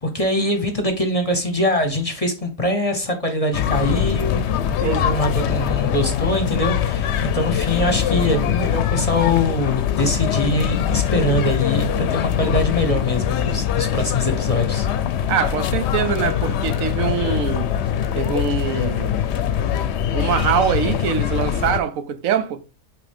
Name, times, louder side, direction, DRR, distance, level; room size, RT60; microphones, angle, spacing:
voice 1, 0.0-14.9, left 1 dB, 30° left, 0.8 m, -23 dB
sound 1, 3.5-21.8, left 9 dB, 65° left, 0.8 m, -22 dB
voice 2, 15.3-17.7 18.2-19.2 20.1-22.6, right 8 dB, 90° right, 1.2 m, -23 dB
8.4 x 3.2 x 3.5 m
omnidirectional pair, 1.4 m